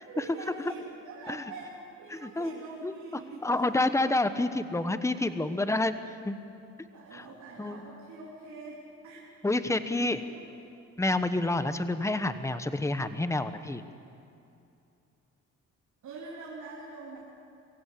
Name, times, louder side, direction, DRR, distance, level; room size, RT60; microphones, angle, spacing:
voice 1, 0.1-3.9 5.4-5.5 6.9-9.2 10.0-10.5 16.0-17.2, right 3 dB, 70° right, -5 dB, 3.6 m, -44 dB
voice 2, 2.1-2.5 2.8-2.9 3.4-5.9 6.2-6.4 7.1-7.2 7.6-7.8 9.4-10.2 11.0-13.8, left 2 dB, 10° left, 11 dB, 1.1 m, -28 dB
23.5 x 16.0 x 8.4 m, 2.7 s
cardioid pair, 90°, 30 cm